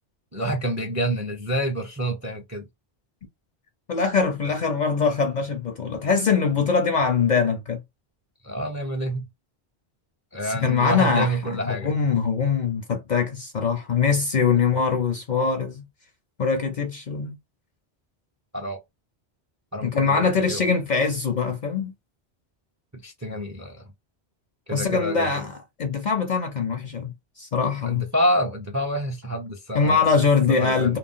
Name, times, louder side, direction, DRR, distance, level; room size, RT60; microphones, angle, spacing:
voice 1, 0.3-2.7 4.4-4.5 8.4-9.3 10.3-11.9 18.5-18.8 19.7-20.6 22.9-23.8 24.7-25.4 27.8-30.0 30.5-30.9, equal, 25° right, 0.3 m, -28 dB
voice 2, 3.9-7.8 10.4-11.3 11.6-15.9 16.4-17.4 19.8-21.9 24.7-25.5 25.8-28.0 29.7-31.0, left 5 dB, 55° left, 0.5 m, -23 dB
2.4 x 2.1 x 3.5 m
omnidirectional pair, 1.1 m